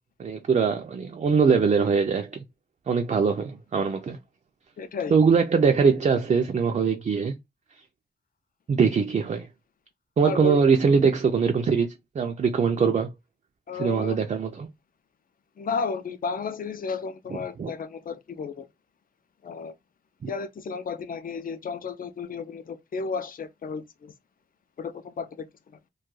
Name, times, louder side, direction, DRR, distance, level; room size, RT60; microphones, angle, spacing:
voice 1, 0.2-2.4 2.9-4.2 5.1-7.3 8.7-9.5 10.2-11.9 12.2-13.1 13.7-14.7 17.3-17.7 20.2-20.3, right 5 dB, 45° right, 0.4 m, -22 dB
voice 2, 4.8-5.1 10.2-10.6 13.7-14.2 15.6-18.7 19.4-19.7 20.3-24.1 24.8-25.5, left 5 dB, 55° left, 0.4 m, -33 dB
2.3 x 2.2 x 3.0 m
wide cardioid pair, 85°, 17 cm